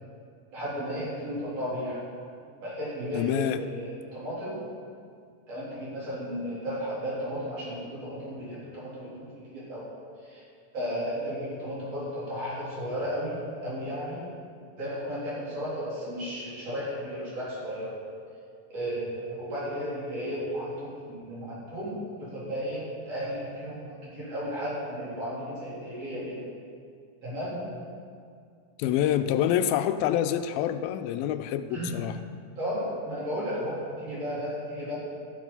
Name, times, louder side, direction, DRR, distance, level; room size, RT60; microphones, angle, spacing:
voice 1, 0.5-2.0 2.6-4.6 5.5-9.1 9.5-9.9 10.2-10.4 10.7-14.3 14.8-18.0 18.7-26.4 27.2-27.6 31.7-31.9 32.6-34.9, equal, 45° right, -8 dB, 4.3 m, -34 dB
voice 2, 3.1-3.6 28.8-32.1, left 10 dB, 90° left, 11 dB, 2.3 m, -26 dB
13.0 x 7.4 x 5.5 m, 2.3 s
omnidirectional pair, 4.1 m